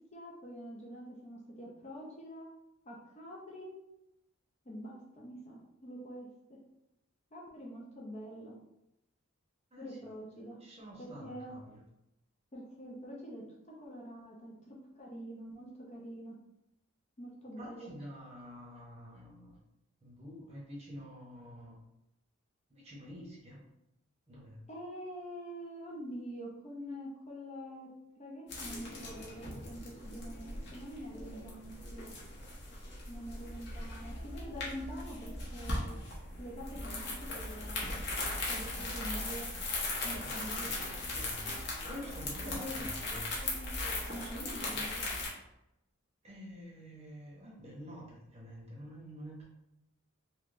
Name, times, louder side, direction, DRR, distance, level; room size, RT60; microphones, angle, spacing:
voice 1, 0.1-2.5 2.8-3.7 4.7-6.6 7.3-8.5 9.8-10.6 11.0-11.6 12.5-16.4 17.2-17.9 24.7-27.9 28.2-32.1 33.1-35.9 36.4-38.0 38.5-39.5 40.0-40.7 42.4-42.8 44.1-45.0, equal, 30° left, -2 dB, 0.5 m, -45 dB
voice 2, 10.6-11.8 17.6-19.6 20.0-21.8 22.7-23.6 24.3-24.6 33.7-34.2 40.1-41.5 41.8-43.3 44.2-44.4 44.7-44.9 46.2-49.4, equal, 30° right, -3 dB, 0.8 m, -48 dB
sound 1, 28.5-45.3, left 2 dB, 50° left, 0.9 m, -39 dB
3.2 x 2.9 x 2.5 m, 0.88 s
head